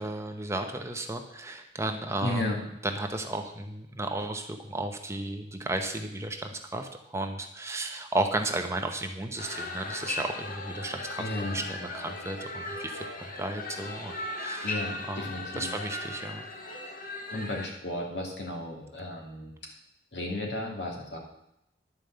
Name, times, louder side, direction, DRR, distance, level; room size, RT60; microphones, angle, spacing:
voice 1, 0.0-14.8 15.1-15.3 15.5-16.4, right 2 dB, 15° right, 4 dB, 0.9 m, -34 dB
voice 2, 2.2-2.6 11.2-11.6 14.6-15.7 17.3-19.5 20.1-21.2, left 1 dB, 70° left, 0 dB, 2.7 m, -34 dB
sound 1, 9.4-17.7, left 2 dB, 50° left, 1.3 m, -37 dB
11.5 x 5.2 x 7.8 m, 0.80 s
head